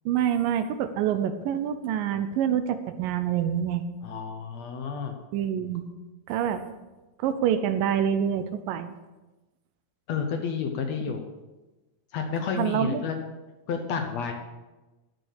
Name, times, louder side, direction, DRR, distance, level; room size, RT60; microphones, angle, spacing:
voice 1, 0.1-3.8 5.3-5.8 6.3-6.6 7.2-8.9 12.6-13.0, right 9 dB, 80° right, 10 dB, 2.1 m, -26 dB
voice 2, 4.0-5.2 10.1-11.3 12.1-13.3 13.7-14.3, left 6 dB, 75° left, 4 dB, 1.5 m, -30 dB
13.5 x 6.5 x 6.5 m, 1.1 s
omnidirectional pair, 4.3 m